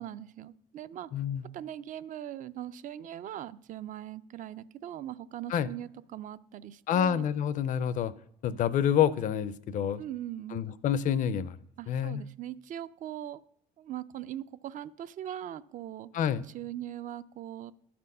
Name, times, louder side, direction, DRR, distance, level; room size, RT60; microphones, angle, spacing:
voice 1, 0.0-1.1 1.5-7.3 10.0-10.7 11.8-13.4 13.8-16.1 16.5-17.7, right 11 dB, 50° right, 16 dB, 0.4 m, -40 dB
voice 2, 1.1-1.4 5.5-5.7 6.9-8.1 8.4-10.0 10.5-11.6 11.9-12.2 16.1-16.4, left 9 dB, 50° left, 15 dB, 0.4 m, -28 dB
12.0 x 4.3 x 5.4 m, 0.71 s
cardioid pair, 110°, 17 cm